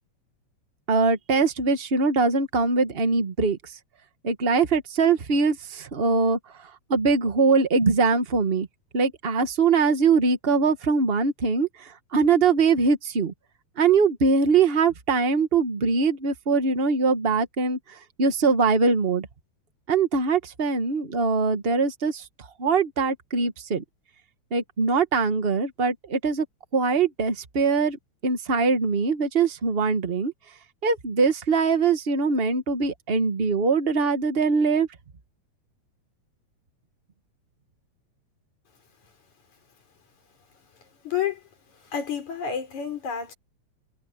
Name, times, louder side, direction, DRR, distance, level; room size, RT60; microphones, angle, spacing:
voice 1, 0.9-3.7 4.2-6.4 6.9-8.7 8.9-13.3 13.8-19.3 19.9-22.2 22.6-23.8 24.5-26.4 26.7-28.0 28.2-30.3 30.8-34.9, right 4 dB, 80° right, 0.5 m, -22 dB
voice 2, 41.0-41.4 41.9-43.3, left 8 dB, 80° left, 5.6 m, -29 dB
omnidirectional pair, 3.3 m